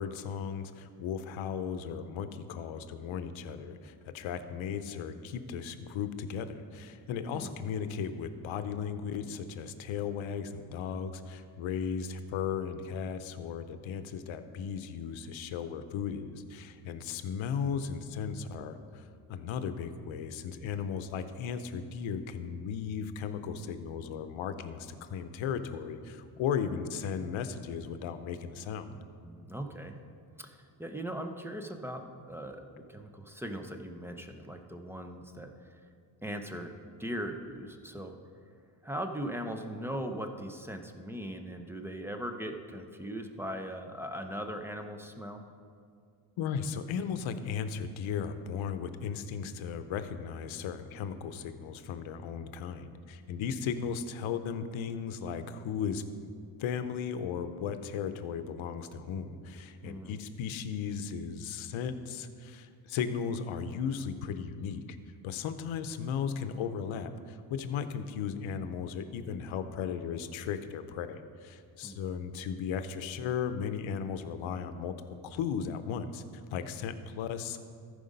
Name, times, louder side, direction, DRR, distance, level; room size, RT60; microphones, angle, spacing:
voice 1, 0.0-28.9 46.4-56.0 56.6-64.8 65.2-74.9 75.2-76.2 76.5-77.6, left 7 dB, 80° left, 10 dB, 0.7 m, -36 dB
voice 2, 7.3-7.6 28.9-30.0 30.4-35.8 36.2-36.7 37.0-38.1 38.8-45.4 59.8-60.2 71.8-72.0, equal, 5° right, 5 dB, 0.6 m, -39 dB
14.0 x 5.0 x 5.3 m, 2.3 s
cardioid pair, 100°, 47 cm